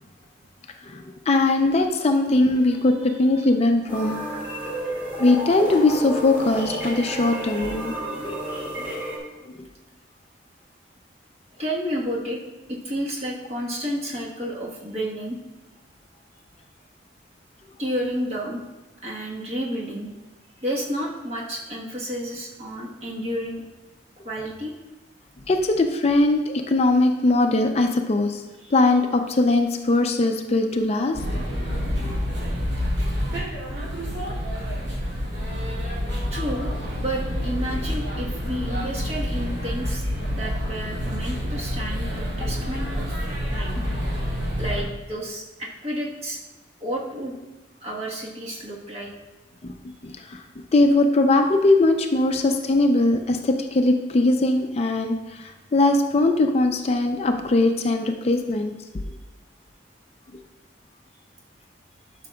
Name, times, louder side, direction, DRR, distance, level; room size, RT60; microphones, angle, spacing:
voice 1, 0.8-4.2 5.2-7.9 9.6-9.7 25.5-28.4 28.7-31.2 31.9-32.2 49.6-49.7 50.0-50.4 50.7-58.7, left 2 dB, 35° left, 5 dB, 0.4 m, -20 dB
voice 2, 2.8-3.4 7.3-8.3 8.8-9.1 11.6-12.4 12.7-15.4 17.8-18.6 19.0-20.1 20.6-23.6 24.2-24.7 28.6-28.7 35.7-35.8 36.3-43.2 43.5-43.8 44.6-46.4 46.8-47.4 47.8-49.1, equal, 35° right, -2 dB, 1.3 m, -31 dB
sound 1, 3.9-9.2, right 1 dB, 10° right, 2.1 m, -31 dB
sound 2, 31.1-44.8, equal, 65° right, 2.4 m, -28 dB
11.5 x 5.9 x 2.3 m, 1.1 s
head